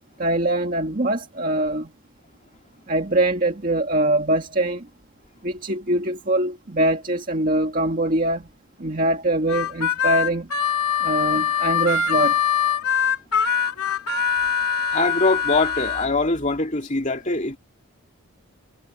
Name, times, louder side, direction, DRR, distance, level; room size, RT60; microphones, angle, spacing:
voice 1, 0.2-1.9 2.9-4.9 5.4-8.5 8.8-10.5 11.0-12.4, right 1 dB, 40° right, 1.9 m, -23 dB
Harmonica, 9.5-16.1, left 7 dB, 85° left, 3.5 m, -23 dB
voice 2, 14.9-17.6, left 3 dB, 35° left, 2.7 m, -22 dB
head